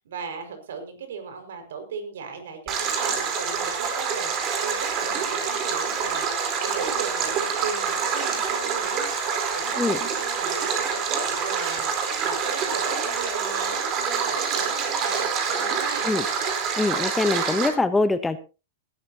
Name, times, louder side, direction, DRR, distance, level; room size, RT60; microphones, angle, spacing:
voice 1, 0.0-16.1, right 5 dB, 80° right, 6 dB, 5.7 m, -37 dB
Stream, 2.7-17.7, right 6 dB, 30° right, 4.1 m, -26 dB
voice 2, 16.8-18.4, left 3 dB, 5° left, 11 dB, 0.9 m, -23 dB
20.0 x 12.0 x 2.9 m, 0.31 s
hypercardioid pair, 150°, 0 cm